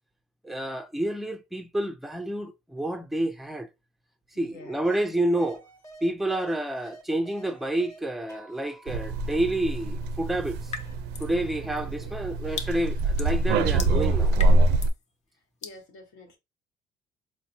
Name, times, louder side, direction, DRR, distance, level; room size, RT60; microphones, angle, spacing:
voice 1, 0.4-3.7 4.4-5.6 6.0-10.7 11.2-14.4, right 1 dB, ahead, 0.4 m, -29 dB
voice 2, 4.3-4.8 11.4-11.5 11.8-12.2 15.6-16.4, left 2 dB, 80° left, 1.2 m, -48 dB
sound 1, 4.8-5.1 5.4-8.0 8.3-11.0, right 2 dB, 20° left, 1.1 m, -50 dB
sound 2, 8.9-14.9, right 2 dB, 90° right, 0.4 m, -25 dB
sound 3, 10.7-11.4 11.8-15.0 15.6-15.8, left 5 dB, 40° left, 0.6 m, -39 dB
4.0 x 2.1 x 2.7 m
cardioid pair, 110°, 17 cm